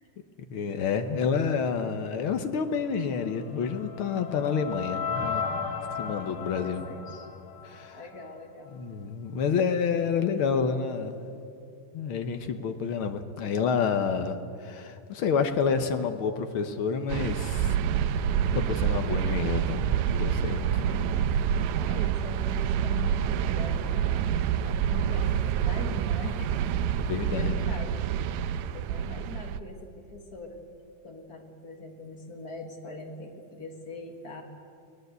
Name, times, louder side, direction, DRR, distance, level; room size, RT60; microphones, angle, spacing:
voice 1, 0.5-5.5 6.0-6.8 7.6-8.0 8.7-11.2 11.9-17.7 18.5-20.9 27.0-27.7, left 6 dB, 65° left, 7 dB, 1.3 m, -29 dB
sound 1, 3.2-8.4, left 6 dB, 85° left, 2.9 m, -35 dB
voice 2, 6.6-7.3 7.9-8.8 20.9-21.3 21.8-26.6 26.9-27.0 27.3-28.1 28.7-30.6 31.0-34.4, left 3 dB, 35° left, 3 dB, 1.9 m, -42 dB
sound 2, 17.1-29.6, right 9 dB, 75° right, 1.8 m, -27 dB
23.5 x 19.0 x 8.1 m, 2.6 s
omnidirectional pair, 3.7 m